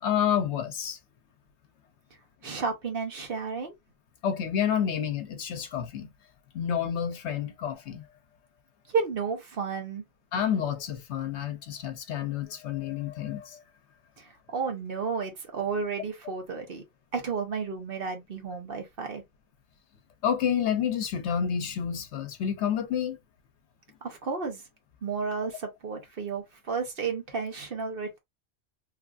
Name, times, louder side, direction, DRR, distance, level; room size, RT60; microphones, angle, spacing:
voice 1, 0.0-1.0 4.2-6.1 6.5-8.0 10.3-13.6 20.2-23.2, left 8 dB, 80° left, 1.0 m, -29 dB
voice 2, 2.4-3.7 8.9-10.0 14.2-16.8 17.1-19.2 24.0-24.6 25.0-28.2, right 5 dB, 55° right, 1.1 m, -32 dB
3.2 x 2.4 x 2.4 m
omnidirectional pair, 1.1 m